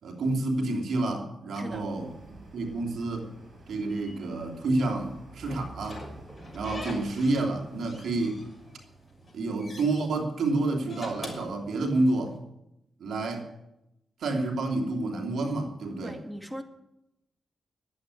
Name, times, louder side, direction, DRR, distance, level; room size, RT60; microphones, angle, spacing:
voice 1, 0.0-2.1 2.5-3.3 3.7-6.0 6.5-8.4 9.3-12.4 13.0-13.5 14.2-16.2, right 2 dB, 75° right, 2.7 m, -29 dB
voice 2, 1.5-1.9 13.3-13.4 16.0-16.6, equal, 5° right, 1.9 m, -39 dB
sound 1, 1.7-10.0, right 2 dB, 55° right, 5.5 m, -49 dB
Slam / Squeak, 5.5-7.5 7.8-8.8 9.2-10.1 10.7-12.3, left 2 dB, 20° left, 6.2 m, -43 dB
11.5 x 8.7 x 9.5 m
cardioid pair, 55°, 0 cm